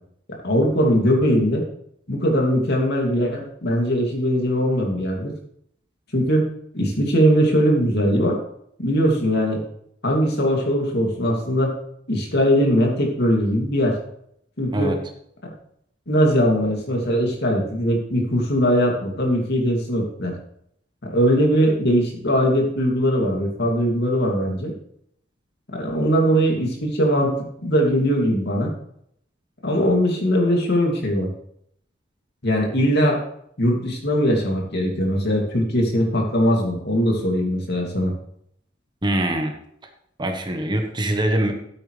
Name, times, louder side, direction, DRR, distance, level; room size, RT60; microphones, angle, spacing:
voice 1, 0.4-1.6 2.1-5.3 6.1-6.5 6.7-8.4 8.8-9.6 10.0-11.7 12.1-13.9 14.6-15.0 15.4-15.5 16.1-20.3 21.0-24.7 25.7-28.7 29.6-31.3 32.4-33.2 33.6-38.1, equal, 60° left, 0 dB, 2.6 m, -20 dB
voice 2, 39.0-39.5 40.2-41.5, right 1 dB, 25° right, 4 dB, 1.2 m, -23 dB
13.5 x 8.7 x 3.4 m, 0.70 s
head